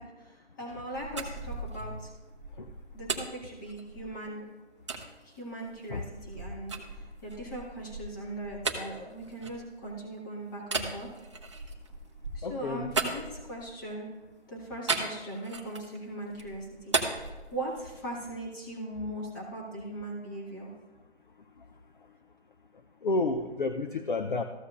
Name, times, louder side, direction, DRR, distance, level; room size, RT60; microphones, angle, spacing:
voice 1, 0.0-2.1 2.9-4.5 5.2-11.1 12.3-14.1 14.5-20.7, right 1 dB, 15° left, -3 dB, 1.5 m, -39 dB
sound 1, 0.7-4.2 4.9-5.1 5.6-10.0 10.6-13.9 14.9-16.0 16.3-18.1, right 3 dB, 25° right, 0.7 m, -36 dB
voice 2, 12.4-12.9 23.0-24.4, left 2 dB, 45° left, 7 dB, 0.6 m, -30 dB
14.5 x 7.2 x 2.5 m, 1.2 s
hypercardioid pair, 165°, 35 cm